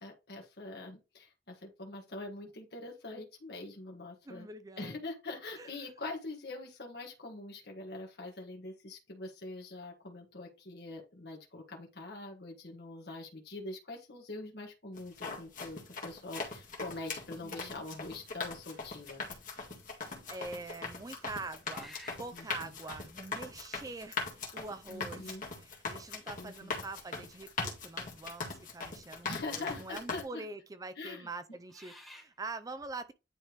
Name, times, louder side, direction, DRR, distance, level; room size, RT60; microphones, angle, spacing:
voice 1, 0.0-4.5 4.8-19.2 22.3-22.7 24.9-25.4 26.4-26.7 29.2-30.4 31.0-31.3, left 2 dB, 65° left, 1.6 m, -44 dB
voice 2, 4.2-5.0 5.5-5.9 17.4-17.8 19.9-33.1, right 3 dB, 20° right, 0.5 m, -45 dB
sound 1, 15.0-30.2, left 4 dB, 50° left, 1.8 m, -41 dB
sound 2, 21.6-22.4 23.6-23.7 24.7-25.1 25.6-25.7 26.3-26.9 28.6-28.7 29.0-29.6 30.2-30.4 31.3-32.4, left 1 dB, ahead, 1.8 m, -54 dB
10.0 x 3.4 x 3.0 m
head